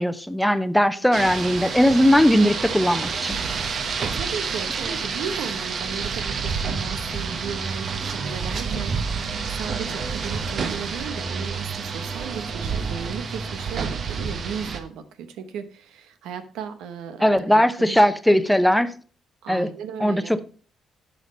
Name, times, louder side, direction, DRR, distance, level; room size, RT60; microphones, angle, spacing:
voice 1, 0.0-3.4 17.2-18.9 19.5-19.7 20.0-20.4, equal, 5° left, 0.7 m, -19 dB
voice 2, 0.9-1.3 4.0-18.0 19.4-20.4, right 7 dB, 90° right, 1.0 m, -36 dB
Rain, 1.1-14.8, right 5 dB, 55° right, 1.2 m, -29 dB
10.5 x 5.8 x 5.2 m
cardioid pair, 90°, 0 cm